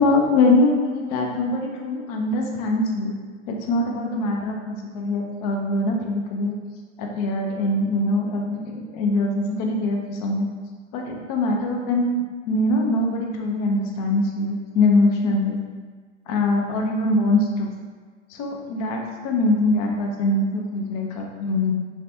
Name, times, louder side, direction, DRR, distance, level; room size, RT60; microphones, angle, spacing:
voice 1, 0.0-3.2 3.5-6.5 7.0-10.5 10.9-12.2 12.5-15.6 16.3-17.7 18.3-21.7, left 2 dB, 35° left, 1 dB, 0.4 m, -23 dB
3.1 x 2.2 x 2.6 m, 1.5 s
figure-of-eight pair, 100°, 37 cm